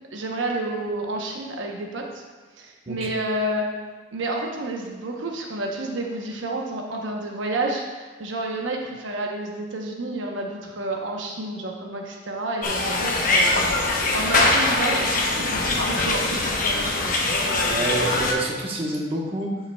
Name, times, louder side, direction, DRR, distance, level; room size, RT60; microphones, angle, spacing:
voice 1, 0.1-2.1 2.6-3.7 4.1-17.2, right 2 dB, 80° right, 0 dB, 0.9 m, -30 dB
sound 1, 12.6-18.3, left 2 dB, 45° left, 0.9 m, -22 dB
voice 2, 17.7-19.6, right 1 dB, 30° right, -3 dB, 1.1 m, -27 dB
11.5 x 5.6 x 2.3 m, 1.4 s
head